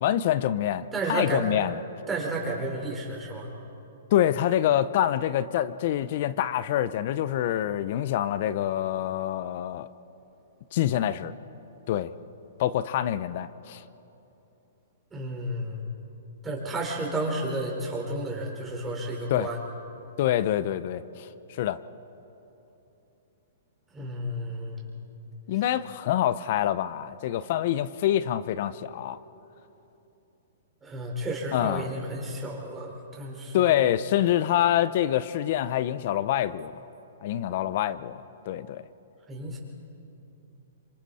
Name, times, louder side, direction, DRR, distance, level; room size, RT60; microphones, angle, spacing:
voice 1, 0.0-1.8 4.1-9.9 10.7-11.3 11.9-12.1 12.6-13.8 19.3-19.5 20.2-21.8 25.5-29.2 31.5-31.9 33.5-36.8 37.2-38.8, left 11 dB, 50° left, 15 dB, 0.7 m, -26 dB
voice 2, 0.9-1.5 2.1-3.5 15.1-15.8 16.4-19.6 23.9-24.8 30.8-33.7 39.3-39.6, right 1 dB, 15° right, -2 dB, 4.6 m, -32 dB
26.0 x 26.0 x 4.3 m, 3.0 s
hypercardioid pair, 135°, 0 cm